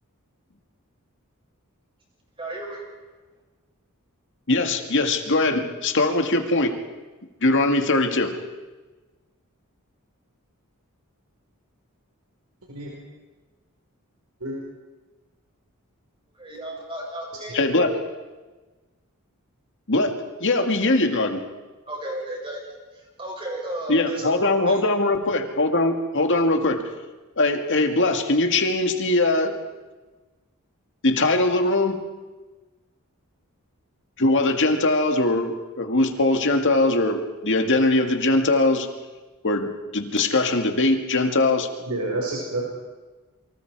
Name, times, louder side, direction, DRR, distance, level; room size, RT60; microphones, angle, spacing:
voice 1, 2.4-2.9 16.4-18.0 21.9-22.6 23.2-24.7, equal, 25° right, -1 dB, 7.0 m, -33 dB
voice 2, 4.5-6.7 7.4-8.4 17.5-17.9 19.9-20.1 20.4-21.4 23.9-26.8 27.4-29.6 31.0-32.0 34.2-38.9 39.4-41.7, left 2 dB, 60° left, 6 dB, 2.1 m, -21 dB
voice 3, 41.9-42.6, right 2 dB, 85° right, -3 dB, 5.0 m, -28 dB
28.5 x 24.5 x 4.8 m, 1.2 s
head